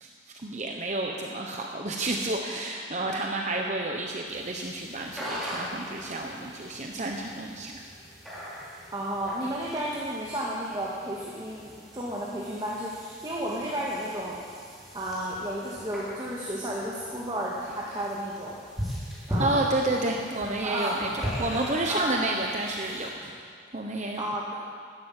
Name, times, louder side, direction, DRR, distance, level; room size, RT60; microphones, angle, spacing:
voice 1, 0.0-7.8 19.4-23.3 23.7-24.2, right 2 dB, 40° right, 1 dB, 1.0 m, -30 dB
sound 1, 4.3-23.1, equal, ahead, 4.0 m, -39 dB
voice 2, 8.9-14.4 14.9-18.6 19.3-19.7 20.6-21.1 21.9-22.2 24.2-24.6, right 1 dB, 20° right, -5 dB, 2.0 m, -32 dB
13.0 x 12.0 x 8.9 m, 2.2 s
head